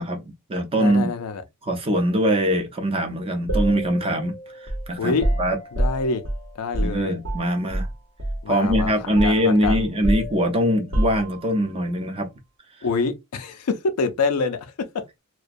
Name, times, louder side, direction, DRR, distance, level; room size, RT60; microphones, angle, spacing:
voice 1, 0.0-1.1 1.6-4.4 4.6-5.6 6.8-7.9 8.5-12.3, equal, 25° right, 0.5 m, -22 dB
voice 2, 0.8-1.4 5.0-5.3 5.7-6.2 6.6-7.2 8.4-8.9 9.2-9.8 12.8-15.0, left 4 dB, 85° left, 0.5 m, -26 dB
sound 1, 3.5-7.9 8.2-8.4 8.7-11.7, right 1 dB, 65° right, 0.8 m, -27 dB
2.3 x 2.1 x 2.5 m
head